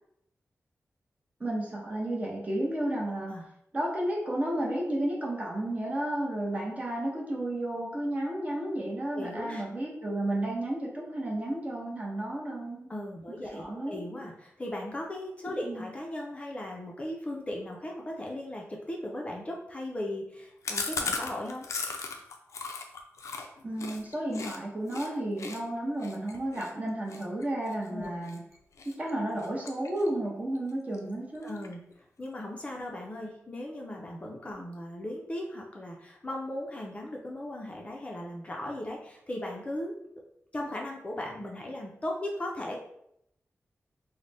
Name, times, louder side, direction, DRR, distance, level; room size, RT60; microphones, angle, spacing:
voice 1, 1.4-3.3 3.7-12.9 13.3-14.0 15.6-15.9 23.6-28.4 28.8-31.5, right 1 dB, 30° right, -2 dB, 0.7 m, -32 dB
voice 2, 9.1-9.6 12.9-21.7 27.9-28.2 31.4-31.8 32.2-39.9 40.5-42.8, left 1 dB, 25° left, -1 dB, 0.5 m, -37 dB
Chewing mastication, 20.6-24.6 24.9-25.1 25.4-28.4 28.8-29.1 29.4-30.3 30.6-30.7 30.9-31.0 31.3-31.9, left 4 dB, 80° left, 0.4 m, -37 dB
3.9 x 2.1 x 3.3 m, 0.75 s
wide cardioid pair, 170°, 5 cm